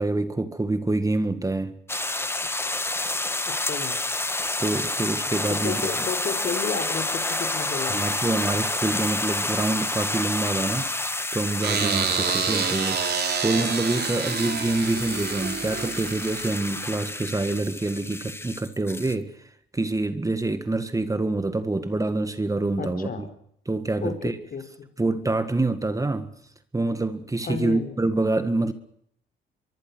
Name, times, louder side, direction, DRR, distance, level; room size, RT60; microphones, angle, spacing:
voice 1, 0.0-1.8 4.6-5.8 7.9-13.2 13.4-23.3 23.7-24.4 25.0-26.3 26.7-28.7, right 2 dB, 15° right, 1.9 m, -26 dB
sound 1, 1.9-19.1, left 2 dB, 10° left, 1.4 m, -29 dB
voice 2, 3.5-4.0 5.5-8.1 22.8-23.3 24.0-24.2 24.5-24.9 27.4-28.0, left 5 dB, 50° left, 4.8 m, -32 dB
sound 2, 11.6-16.9, right 7 dB, 55° right, 3.4 m, -28 dB
24.0 x 24.0 x 6.3 m
cardioid pair, 90°, 20 cm